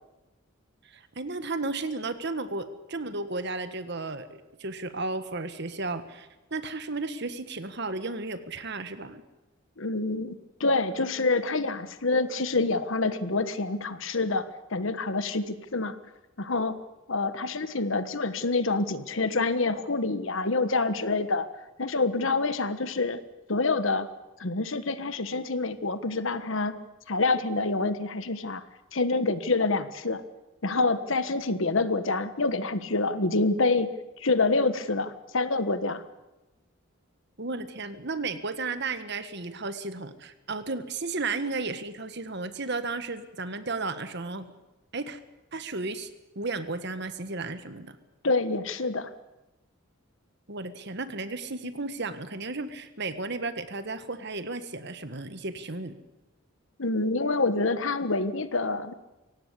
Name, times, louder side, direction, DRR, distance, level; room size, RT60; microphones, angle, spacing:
voice 1, 0.8-9.2 37.4-44.4 44.9-45.2 45.5-46.1 46.3-48.0 50.5-56.0, right 3 dB, 55° right, 11 dB, 1.6 m, -34 dB
voice 2, 9.8-16.0 16.4-16.8 17.1-21.5 21.8-23.2 23.5-24.1 24.4-26.8 27.1-28.6 28.9-30.2 30.6-33.9 34.2-36.0 48.2-49.1 56.8-58.9, left 3 dB, 65° left, 12 dB, 1.3 m, -27 dB
24.0 x 17.5 x 8.4 m, 1.0 s
head